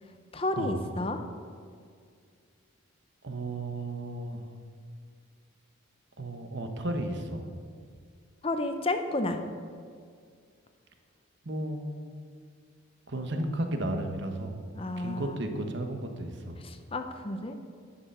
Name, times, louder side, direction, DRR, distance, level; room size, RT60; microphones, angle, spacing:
voice 1, 0.3-1.2 8.4-9.4 14.7-15.5 16.6-17.5, left 2 dB, 25° left, 7 dB, 0.8 m, -31 dB
voice 2, 3.2-4.5 6.2-7.4 11.4-11.8 13.1-14.6 15.0-16.6, right 1 dB, 55° right, 5 dB, 1.1 m, -33 dB
11.0 x 6.9 x 6.8 m, 2.1 s
head